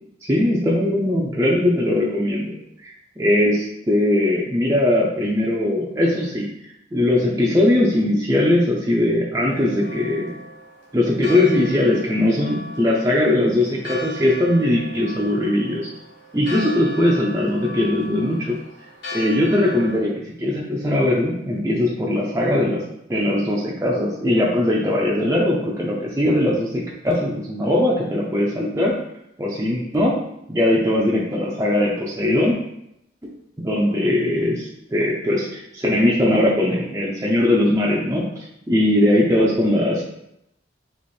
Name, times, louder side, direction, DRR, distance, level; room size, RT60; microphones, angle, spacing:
voice 1, 0.3-2.6 2.8-6.5 6.9-10.4 10.9-15.9 16.3-18.6 19.1-22.8 23.1-29.0 29.4-30.2 30.5-32.5 33.2-33.3 33.6-38.2 38.7-40.0, left 1 dB, 15° right, -5 dB, 0.5 m, -20 dB
Church bell, 9.4-20.0, left 1 dB, 75° left, 1.3 m, -37 dB
3.2 x 3.0 x 4.2 m, 0.79 s
head